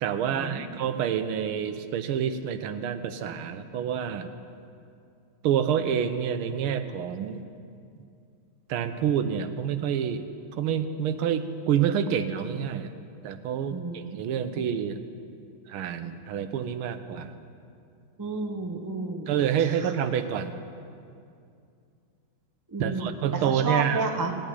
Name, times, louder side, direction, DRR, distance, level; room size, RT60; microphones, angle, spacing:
voice 1, 0.0-4.3 5.4-7.4 8.7-10.2 10.6-12.9 13.2-15.0 15.7-17.3 19.3-20.5 22.8-24.0, right 8 dB, 80° right, 10 dB, 1.6 m, -28 dB
voice 2, 18.2-19.3 22.7-23.1 23.4-24.3, right 3 dB, 20° right, 2 dB, 0.4 m, -31 dB
17.0 x 7.3 x 9.8 m, 2.4 s
omnidirectional pair, 2.4 m